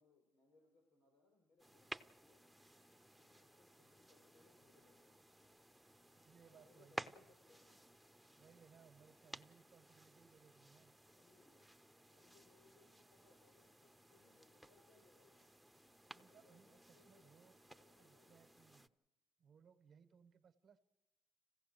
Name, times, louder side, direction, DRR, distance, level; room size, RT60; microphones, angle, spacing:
voice 1, 0.0-2.5 3.2-5.2 6.4-8.0 11.1-15.5 16.1-18.6, left 3 dB, 75° left, 4 dB, 6.0 m, -72 dB
sound 1, 1.6-18.9, right 1 dB, ahead, 0.7 m, -57 dB
voice 2, 6.1-7.1 8.3-11.0 16.1-17.6 18.0-18.9 19.4-20.9, right 6 dB, 55° right, 10 dB, 1.0 m, -66 dB
26.0 x 16.0 x 6.7 m, 1.1 s
cardioid pair, 95°, 0 cm